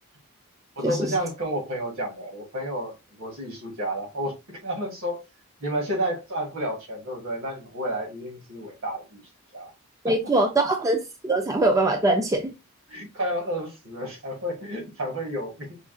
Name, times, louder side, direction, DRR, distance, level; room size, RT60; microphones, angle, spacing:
voice 1, 0.7-5.2 5.6-9.2 9.5-9.7 10.0-10.7 12.9-15.8, right 1 dB, 65° right, 1.7 m, -31 dB
voice 2, 10.0-12.5, right 2 dB, 15° right, 0.4 m, -22 dB
5.0 x 2.8 x 2.6 m
head